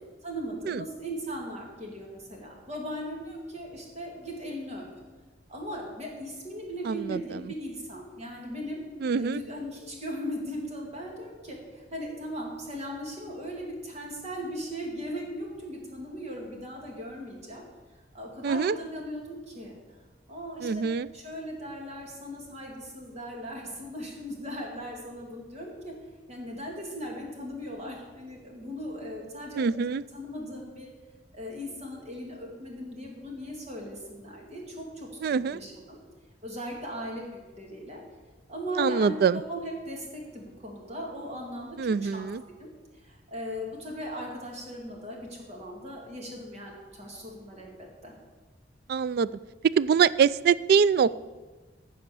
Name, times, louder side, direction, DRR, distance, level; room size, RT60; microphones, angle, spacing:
voice 1, 0.2-4.9 5.5-8.8 9.2-17.6 18.1-19.8 20.3-20.8 21.1-25.9 26.3-29.7 30.1-30.9 31.3-35.1 35.4-36.0 36.4-38.0 38.5-42.3 42.6-48.1, equal, 40° right, 0 dB, 2.6 m, -38 dB
voice 2, 6.8-7.4 9.0-9.4 18.4-18.8 20.6-21.1 29.6-30.0 35.2-35.6 38.8-39.4 41.8-42.4 48.9-49.3 49.8-51.2, right 6 dB, 60° right, 18 dB, 0.3 m, -24 dB
15.0 x 5.0 x 6.9 m, 1.3 s
head